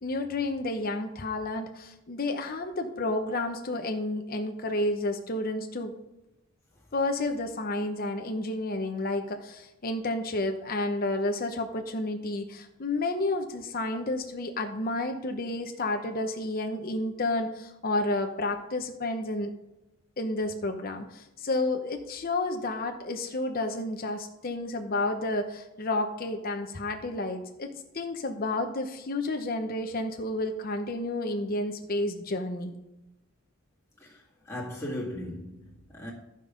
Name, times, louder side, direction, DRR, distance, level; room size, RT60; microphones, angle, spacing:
voice 1, 0.0-5.9 6.9-19.5 20.2-32.7, left 2 dB, 45° left, 0.9 m, -31 dB
voice 2, 34.0-36.1, left 1 dB, 15° left, 1.8 m, -38 dB
14.0 x 5.3 x 5.2 m
head